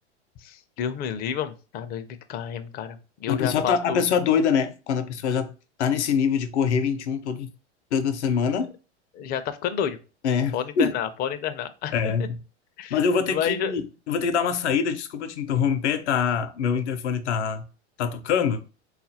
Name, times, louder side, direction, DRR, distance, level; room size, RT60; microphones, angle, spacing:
voice 1, 0.4-4.0 9.1-10.0 10.5-11.9 12.2-12.3 12.8-13.0 13.3-13.7, left 8 dB, 30° left, 0.4 m, -30 dB
voice 2, 3.3-5.5 5.8-7.5 7.9-8.7 10.2-10.9 11.9-12.4 12.9-17.6 18.0-18.6, left 6 dB, 75° left, 0.6 m, -24 dB
3.8 x 2.4 x 2.6 m
hypercardioid pair, 95°, 35 cm